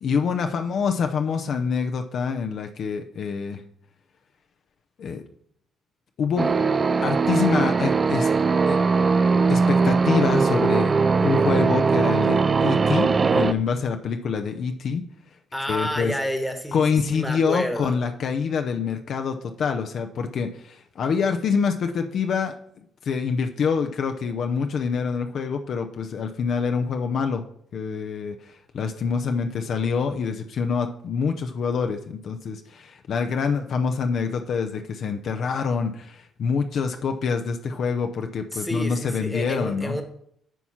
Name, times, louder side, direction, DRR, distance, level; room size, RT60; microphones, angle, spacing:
voice 1, 0.0-3.6 5.0-5.2 6.2-6.6 7.0-8.3 8.7-8.8 9.5-10.9 11.2-15.0 15.7-16.1 16.7-22.5 23.0-27.4 27.7-40.0, left 5 dB, 55° left, 6 dB, 0.7 m, -26 dB
sound 1, 6.4-13.5, right 4 dB, 30° right, 0.4 m, -20 dB
voice 2, 15.5-17.9 38.5-40.0, equal, 5° left, 7 dB, 1.3 m, -29 dB
9.1 x 4.3 x 5.7 m, 0.67 s
cardioid pair, 105°, 0 cm